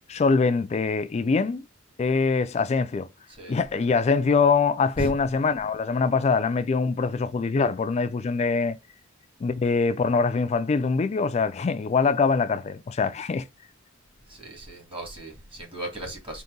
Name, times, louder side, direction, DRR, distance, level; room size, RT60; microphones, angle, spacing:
voice 1, 0.1-1.6 2.0-3.1 3.5-8.8 9.4-13.4, left 4 dB, 35° left, 0.3 m, -23 dB
voice 2, 14.3-16.4, right 1 dB, 25° right, 1.5 m, -36 dB
3.9 x 2.7 x 3.6 m
head